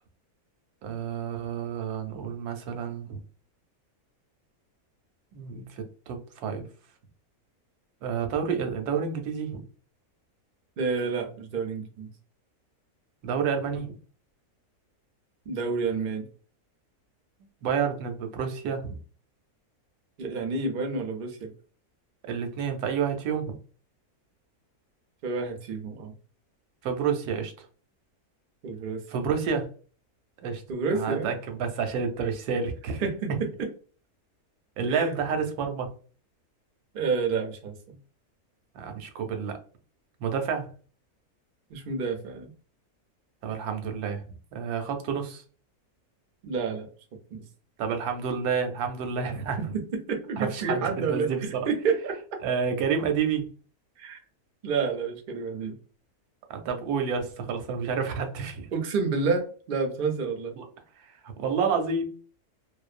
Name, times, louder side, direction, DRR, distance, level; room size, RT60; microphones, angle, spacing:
voice 1, 0.8-3.2 5.3-6.7 8.0-9.6 13.2-13.9 17.6-19.0 22.2-23.4 26.8-27.5 29.1-29.7 30.4-30.6 30.9-33.0 34.8-35.9 38.7-39.6 40.2-40.7 43.4-45.4 47.8-49.6 50.4-51.7 52.4-53.5 56.5-58.7 60.6-60.7 61.2-62.1, right 6 dB, 90° right, 5 dB, 1.1 m, -29 dB
voice 2, 10.8-12.1 15.5-16.3 20.2-21.5 25.2-26.1 28.6-29.0 30.7-31.3 33.0-33.7 34.9-35.1 36.9-37.7 41.7-42.5 46.4-46.9 47.3-47.4 49.6-52.1 54.0-54.2 54.6-55.8 58.7-60.5, right 4 dB, 70° right, 3 dB, 0.5 m, -29 dB
2.6 x 2.0 x 2.4 m, 0.39 s
omnidirectional pair, 1.6 m